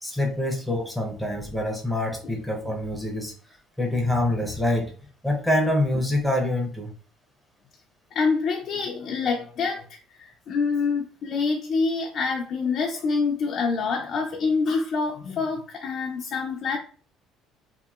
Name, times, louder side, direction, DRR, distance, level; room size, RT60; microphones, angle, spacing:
voice 1, 0.0-4.9 5.2-6.9, left 1 dB, ahead, 0 dB, 0.7 m, -26 dB
voice 2, 8.1-16.8, left 4 dB, 50° left, 0 dB, 0.4 m, -26 dB
2.8 x 2.6 x 2.4 m, 0.42 s
cardioid pair, 125°, 0 cm